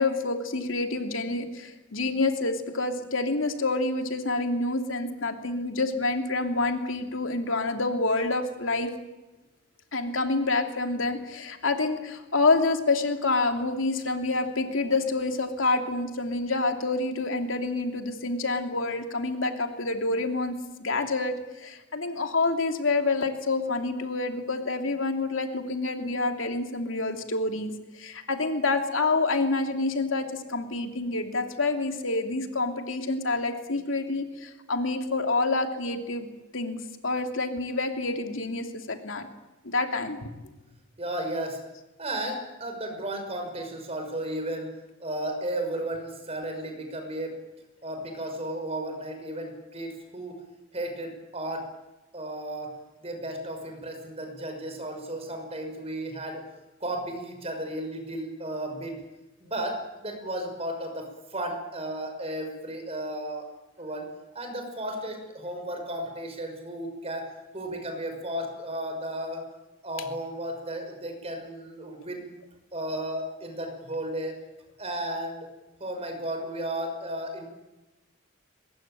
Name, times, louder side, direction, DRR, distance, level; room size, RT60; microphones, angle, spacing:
voice 1, 0.0-8.9 9.9-20.5 20.8-36.3 36.5-39.3 39.6-40.3, left 3 dB, 75° left, 5 dB, 2.9 m, -27 dB
voice 2, 41.0-41.6 42.0-44.7 45.0-47.4 47.8-50.4 50.7-51.7 52.1-56.4 56.8-59.0 59.4-63.5 63.8-69.4 69.8-72.3 72.7-74.4 74.8-75.5 75.8-77.5, right 1 dB, 30° right, 5 dB, 5.9 m, -34 dB
23.0 x 21.0 x 9.1 m, 1.1 s
head